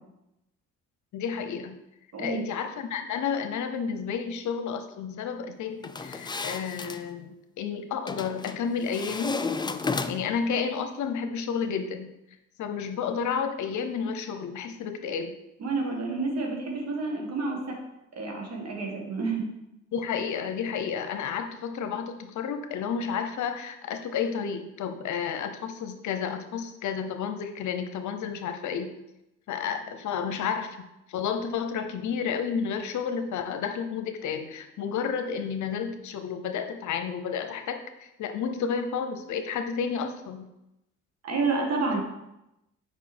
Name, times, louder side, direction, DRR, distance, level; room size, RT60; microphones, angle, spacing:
voice 1, 1.1-1.8 2.2-9.4 10.1-12.1 12.6-15.3 19.9-28.9 29.5-40.5, left 6 dB, 75° left, 8 dB, 0.9 m, -31 dB
voice 2, 2.1-2.4 15.6-17.8 18.1-19.5 41.2-42.0, right 3 dB, 55° right, 0 dB, 2.0 m, -29 dB
sound 1, 5.8-7.0 8.1-8.6 8.9-10.4, left 4 dB, 15° left, 0.4 m, -32 dB
7.2 x 5.4 x 4.4 m, 0.90 s
cardioid pair, 90°, 30 cm